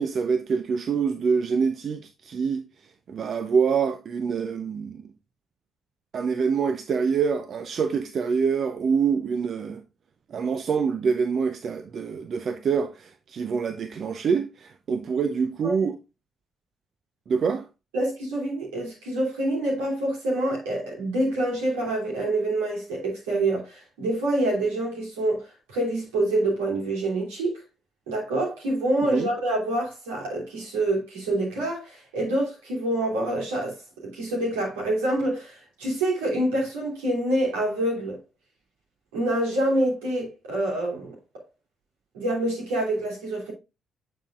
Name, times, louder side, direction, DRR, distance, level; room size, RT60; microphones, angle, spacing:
voice 1, 0.0-2.6 3.1-5.0 6.1-9.8 10.3-16.0 17.3-17.7 29.1-29.3, right 6 dB, 55° right, 0.6 m, -25 dB
voice 2, 17.9-25.4 25.7-27.5 28.1-33.8 34.0-38.2 39.1-41.1 42.1-43.5, right 1 dB, 85° right, 3.1 m, -26 dB
9.1 x 5.5 x 2.5 m
hypercardioid pair, 45°, 0 cm